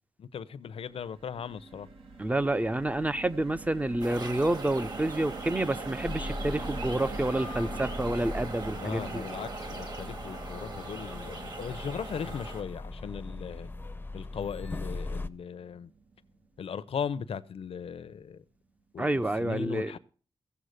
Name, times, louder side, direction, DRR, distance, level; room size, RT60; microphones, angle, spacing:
voice 1, 0.2-1.9 8.7-13.7 14.1-15.9 16.6-18.4 18.9-20.0, left 7 dB, 75° left, 0.8 m, -38 dB
sound 1, 0.7-17.0 17.4-17.5 17.8-18.0, right 3 dB, 85° right, 3.2 m, -45 dB
voice 2, 2.2-9.2 19.0-19.9, right 1 dB, 15° right, 0.6 m, -29 dB
sound 2, 4.0-12.6, right 3 dB, 45° right, 2.4 m, -41 dB
sound 3, 6.0-15.3, left 2 dB, 20° left, 0.7 m, -40 dB
16.5 x 7.2 x 6.6 m
wide cardioid pair, 145°, 10 cm